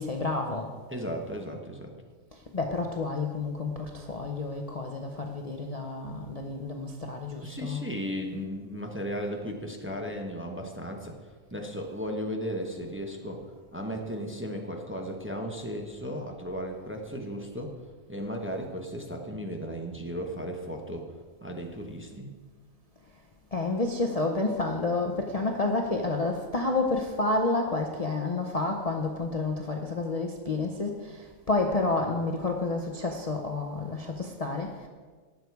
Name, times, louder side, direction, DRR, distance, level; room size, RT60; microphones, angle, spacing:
voice 1, 0.0-0.7 2.3-7.8 23.5-34.9, left 3 dB, 35° left, 2 dB, 0.7 m, -30 dB
voice 2, 0.9-1.9 7.4-11.2 11.5-13.4 13.7-17.7 18.1-21.1 21.4-22.3, equal, 10° right, 2 dB, 0.9 m, -35 dB
17.5 x 6.6 x 4.7 m, 1.5 s
omnidirectional pair, 1.4 m